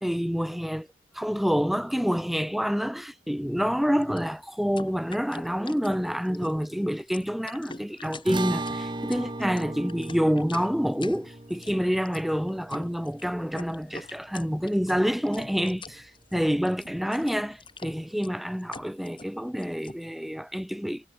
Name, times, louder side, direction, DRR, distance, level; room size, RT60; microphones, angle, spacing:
voice 1, 0.0-0.9 1.1-21.1, equal, ahead, 0.4 m, -27 dB
sound 1, 4.0-20.0, left 3 dB, 25° left, 6.9 m, -45 dB
sound 2, 8.3-14.8, right 2 dB, 25° right, 1.2 m, -37 dB
head